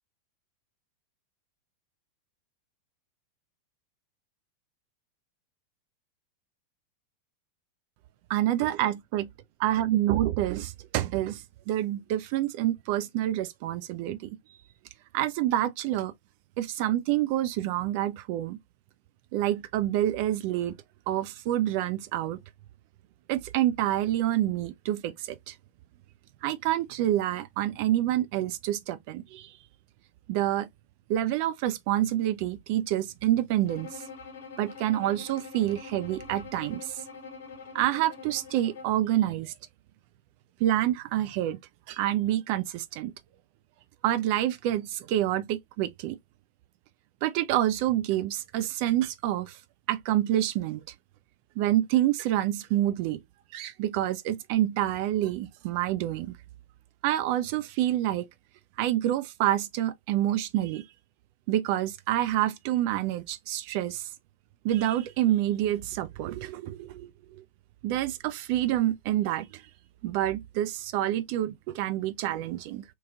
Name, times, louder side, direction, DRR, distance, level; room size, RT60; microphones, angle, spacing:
voice 1, 8.3-9.3 9.6-14.3 15.1-16.1 16.6-18.6 19.3-20.7 21.1-22.4 23.3-25.5 26.4-29.5 30.3-30.7 31.1-34.0 34.6-36.9 37.7-39.5 40.6-41.6 41.9-43.1 44.0-46.2 47.2-49.6 49.9-50.8 51.6-53.2 53.5-56.3 57.0-58.3 58.8-60.8 61.5-64.1 64.6-67.1 67.8-69.6 70.0-72.8, right 13 dB, 45° right, 0.5 m, -27 dB
Bowed string instrument, 33.7-39.1, left 5 dB, 60° left, 0.7 m, -45 dB
3.0 x 2.8 x 2.3 m
figure-of-eight pair, 90°, 0 cm